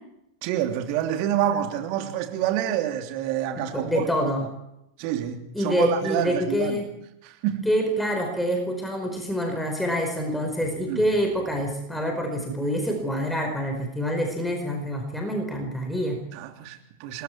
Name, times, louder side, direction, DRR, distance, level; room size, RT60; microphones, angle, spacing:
voice 1, 0.4-4.1 5.0-6.8 7.2-7.7 10.9-11.0 16.3-17.2, right 11 dB, 45° right, 5 dB, 3.1 m, -27 dB
voice 2, 3.6-4.4 5.5-6.9 7.6-16.2, equal, 5° left, 3 dB, 4.8 m, -26 dB
27.5 x 22.0 x 4.7 m, 0.84 s
figure-of-eight pair, 90°, 0 cm